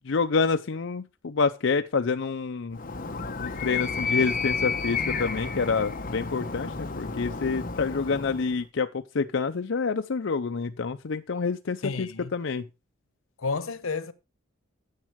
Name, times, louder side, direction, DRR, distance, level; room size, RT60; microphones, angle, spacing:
voice 1, 0.1-2.8 3.4-8.9 9.1-12.6, left 4 dB, 65° left, 0.5 m, -27 dB
Animal, 2.7-8.6, left 4 dB, 45° left, 0.9 m, -31 dB
voice 2, 11.8-12.3 13.4-14.1, left 4 dB, 90° left, 0.9 m, -31 dB
9.9 x 7.4 x 4.6 m
head